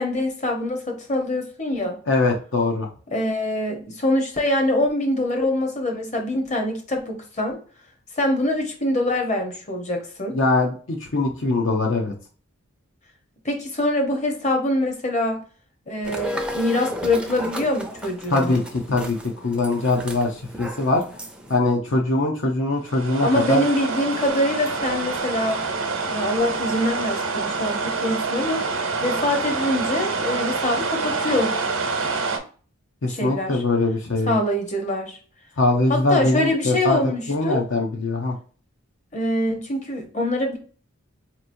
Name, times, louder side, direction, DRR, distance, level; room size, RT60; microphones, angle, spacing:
voice 1, 0.0-2.0 3.1-7.6 8.2-10.4 13.4-15.4 15.9-18.6 23.2-25.6 26.1-28.6 29.0-31.6 33.1-33.6 34.3-35.2 35.9-37.6 39.1-40.6, left 1 dB, 35° left, 0.9 m, -24 dB
voice 2, 2.1-2.9 10.3-12.1 18.3-19.2 19.4-21.0 21.5-23.6 33.0-34.4 35.6-37.0 37.3-38.3, left 2 dB, 65° left, 0.7 m, -22 dB
sound 1, 16.0-21.6, equal, 5° right, 0.4 m, -34 dB
sound 2, 22.8-32.4, right 4 dB, 85° right, 0.8 m, -26 dB
4.4 x 2.9 x 2.6 m
head